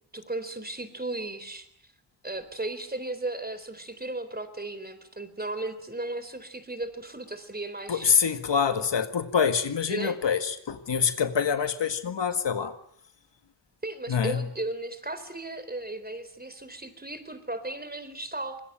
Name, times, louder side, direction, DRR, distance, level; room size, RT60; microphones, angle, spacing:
voice 1, 0.1-1.9 2.2-8.1 9.9-10.2 13.8-18.6, right 2 dB, 20° right, 12 dB, 3.9 m, -35 dB
voice 2, 7.9-12.8 14.1-14.4, left 6 dB, 80° left, 9 dB, 1.9 m, -25 dB
25.5 x 21.0 x 9.0 m, 0.69 s
wide cardioid pair, 75°, 42 cm